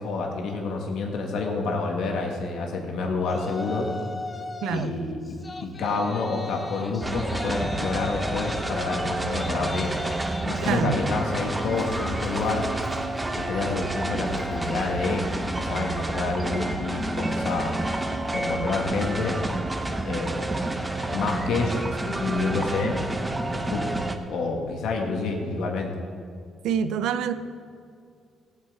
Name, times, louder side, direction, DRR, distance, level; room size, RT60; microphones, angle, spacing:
voice 1, 0.0-3.9 4.7-9.9 10.4-12.7 13.5-15.2 15.6-17.7 18.3-19.3 20.0-20.3 21.1-21.8 22.1-23.0 23.5-24.0 24.3-25.9, left 3 dB, 80° left, 1.7 m, -28 dB
Yell, 3.2-4.9 5.2-15.7, left 3 dB, 30° left, 0.9 m, -40 dB
voice 2, 4.6-5.0 10.6-11.0 26.6-27.3, right 8 dB, 85° right, 0.6 m, -26 dB
sound 1, 7.0-24.2, right 2 dB, 15° right, 1.1 m, -29 dB
17.0 x 8.5 x 4.8 m
cardioid pair, 90°, 0 cm